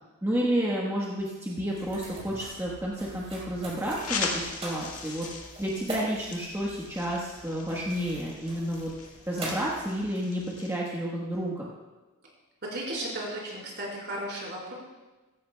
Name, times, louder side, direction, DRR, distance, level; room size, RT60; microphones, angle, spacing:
voice 1, 0.2-5.3 5.6-8.9 9.3-11.6, right 1 dB, 10° right, -4 dB, 1.2 m, -30 dB
sound 1, 1.7-10.6, right 1 dB, 30° right, 4.2 m, -42 dB
sound 2, 1.8-3.0, equal, 85° left, 1.2 m, -52 dB
sound 3, 4.0-10.8, left 5 dB, 70° left, 1.9 m, -39 dB
voice 2, 12.6-14.7, right 1 dB, 50° right, -4 dB, 4.2 m, -35 dB
15.5 x 15.0 x 2.3 m, 1.2 s
head